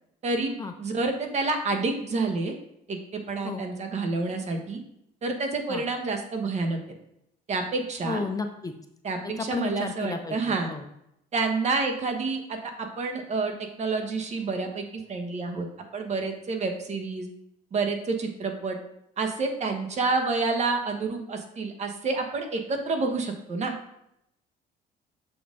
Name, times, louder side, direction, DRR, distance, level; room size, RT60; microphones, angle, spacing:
voice 1, 0.2-2.5 2.9-4.8 5.2-6.8 7.5-8.2 9.0-10.7 11.3-15.7 15.9-17.3 17.7-18.8 19.2-23.7, right 3 dB, 40° right, 4 dB, 1.1 m, -28 dB
voice 2, 8.0-8.7 9.4-10.4 10.7-10.8, left 4 dB, 20° left, 6 dB, 0.5 m, -32 dB
6.7 x 4.2 x 3.7 m, 0.80 s
cardioid pair, 110°, 17 cm